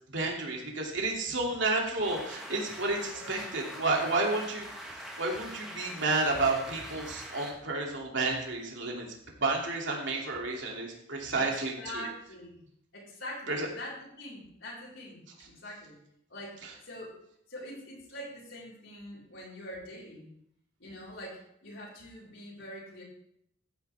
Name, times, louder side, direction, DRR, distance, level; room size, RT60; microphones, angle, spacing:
voice 1, 0.1-9.1 9.4-12.0 13.5-13.7, right 3 dB, 70° right, -1 dB, 2.7 m, -31 dB
sound 1, 2.0-7.5, equal, 5° right, 1.8 m, -44 dB
voice 2, 3.1-3.5 11.3-11.5 11.8-12.6 12.9-16.0 16.3-16.6 16.8-17.2 17.5-20.3 20.8-23.0, left 1 dB, 80° left, -7 dB, 4.6 m, -44 dB
14.0 x 9.6 x 3.5 m, 0.73 s
head